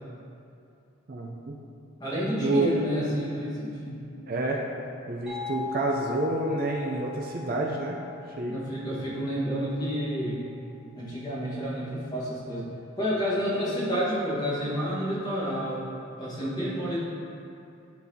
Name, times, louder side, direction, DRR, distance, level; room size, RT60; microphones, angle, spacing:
voice 1, 1.1-1.5 2.4-2.7 4.3-4.6 5.1-8.0 8.4-8.6, right 2 dB, 45° right, -1 dB, 0.5 m, -28 dB
voice 2, 2.0-4.0 8.5-10.4 10.9-12.7 13.0-15.8 16.2-17.0, equal, 20° left, -8 dB, 1.4 m, -29 dB
sound 1, 5.3-10.7, left 8 dB, 5° right, 1.3 m, -41 dB
10.5 x 4.1 x 2.8 m, 2.7 s
head